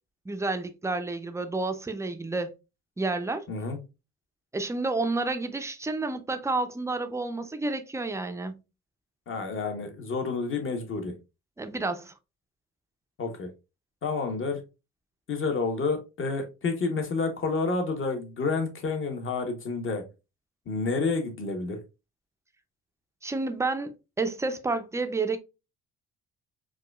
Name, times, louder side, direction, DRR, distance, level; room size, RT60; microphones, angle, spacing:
voice 1, 0.3-2.5 3.0-3.4 4.5-8.6 11.6-12.1 23.2-25.4, right 3 dB, 10° right, 0.4 m, -30 dB
voice 2, 3.5-3.8 9.3-11.1 13.2-13.5 14.0-14.6 15.3-20.0 20.7-21.8, left 4 dB, 45° left, 1.0 m, -29 dB
4.7 x 2.3 x 2.2 m
cardioid pair, 90°, 30 cm